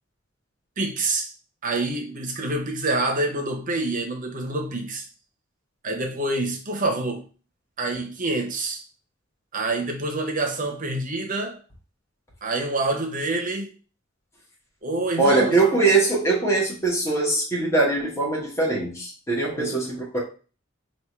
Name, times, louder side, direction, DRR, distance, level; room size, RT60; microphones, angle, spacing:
voice 1, 0.8-1.3 1.6-5.0 5.8-7.2 7.8-8.8 9.5-11.6 12.4-13.7 14.8-15.6 19.5-19.8, right 2 dB, 40° right, 0.9 m, -27 dB
voice 2, 15.2-20.2, right 3 dB, 15° left, 1.3 m, -22 dB
3.6 x 2.5 x 4.6 m
head